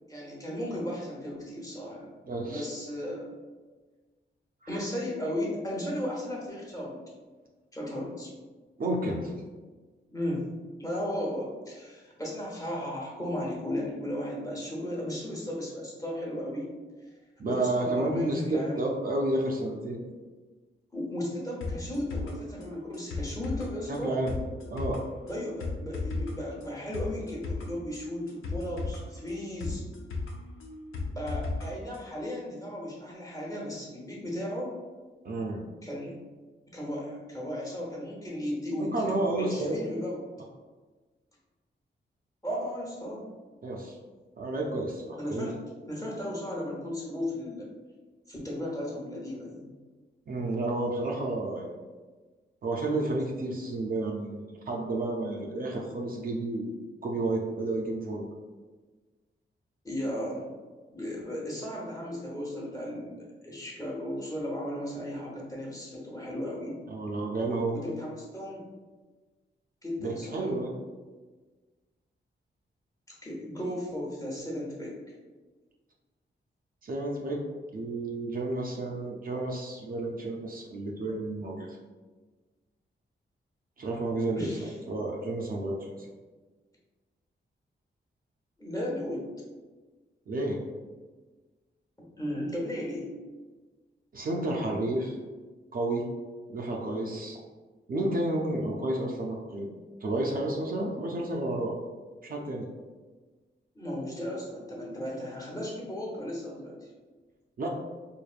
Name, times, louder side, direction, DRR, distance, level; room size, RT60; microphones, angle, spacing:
voice 1, 0.1-2.1 2.4-3.3 4.7-7.0 7.7-8.3 10.1-10.5 10.8-16.7 17.0-17.1 17.5-18.8 20.9-24.1 25.3-29.8 31.2-34.8 35.8-36.2 36.7-39.0 39.4-40.2 42.4-43.3 45.2-45.5 45.9-47.7 48.3-49.7 59.8-60.4 60.9-66.8 67.8-68.6 69.8-70.5 73.1-74.9 84.3-84.7 88.6-89.3 92.0-93.1 103.7-106.8, left 1 dB, 15° left, -5 dB, 0.9 m, -35 dB
voice 2, 2.3-2.7 4.6-4.8 8.8-9.3 17.4-20.0 23.9-24.4 24.7-25.0 35.2-35.6 38.8-39.5 43.6-44.0 44.4-45.5 50.3-51.7 52.6-56.8 57.0-58.3 66.9-68.0 70.0-70.7 76.8-77.4 77.7-81.8 83.8-86.1 90.3-90.6 94.1-95.2 95.7-96.0 96.5-97.4 97.9-99.7 100.0-101.7 102.2-102.7 107.6-107.7, right 2 dB, 45° right, -1 dB, 0.4 m, -31 dB
sound 1, 21.6-31.7 31.9-32.0, left 3 dB, 85° left, 0.6 m, -36 dB
4.8 x 2.5 x 2.4 m, 1.3 s
wide cardioid pair, 165°, 20 cm